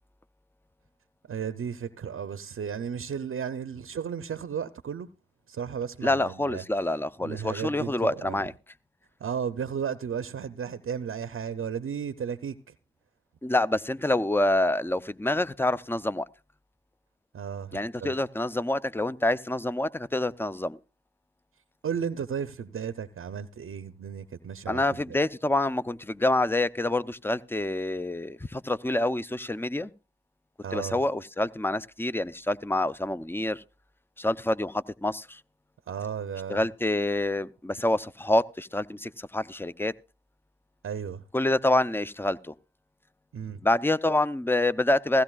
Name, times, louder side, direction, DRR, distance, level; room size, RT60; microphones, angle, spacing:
voice 1, 1.3-5.1 5.5-6.6 7.2-8.4 9.2-12.7 17.3-18.1 21.8-25.0 30.6-31.0 35.9-36.6 40.8-41.2 43.3-43.6, right 7 dB, 90° right, 0.6 m, -34 dB
voice 2, 6.0-8.5 13.4-16.3 17.7-20.8 24.7-29.9 30.7-33.6 34.2-35.4 36.5-39.9 41.3-42.5 43.6-45.2, left 1 dB, 10° left, 0.5 m, -27 dB
16.0 x 16.0 x 2.3 m
cardioid pair, 55°, 21 cm